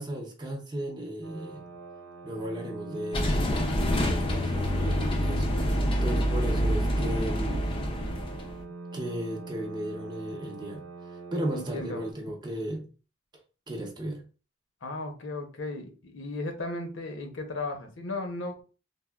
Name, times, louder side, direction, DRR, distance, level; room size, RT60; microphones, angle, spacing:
voice 1, 0.0-1.6 2.2-3.5 4.0-7.6 8.9-10.8 11.3-12.9 13.7-14.2, right 1 dB, 25° right, 0.6 m, -35 dB
sound 1, 1.2-12.1, right 3 dB, 90° right, 0.4 m, -43 dB
sound 2, 3.1-8.6, equal, 30° left, 0.4 m, -27 dB
voice 2, 11.5-12.0 14.8-18.6, left 2 dB, 80° left, 0.7 m, -35 dB
3.4 x 2.1 x 2.3 m
head